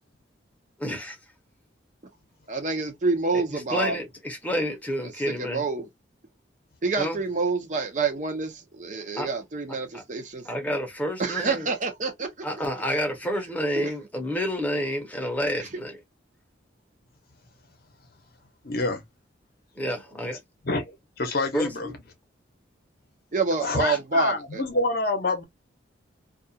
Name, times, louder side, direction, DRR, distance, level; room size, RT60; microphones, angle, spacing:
voice 1, 0.8-1.2 3.3-5.6 7.0-7.2 9.2-9.3 9.9-10.0 10.4-11.7 12.4-16.0 19.8-20.4 21.5-21.9 23.7-23.8, equal, 10° left, 0.7 m, -29 dB
voice 2, 2.5-3.9 5.3-5.9 6.8-10.4 11.2-12.5 13.7-13.9 23.3-24.6, right 4 dB, 40° right, 0.6 m, -27 dB
voice 3, 18.6-19.0 20.6-20.9 21.2-21.9 23.6-25.4, left 2 dB, 50° left, 0.7 m, -26 dB
2.4 x 2.3 x 2.6 m
head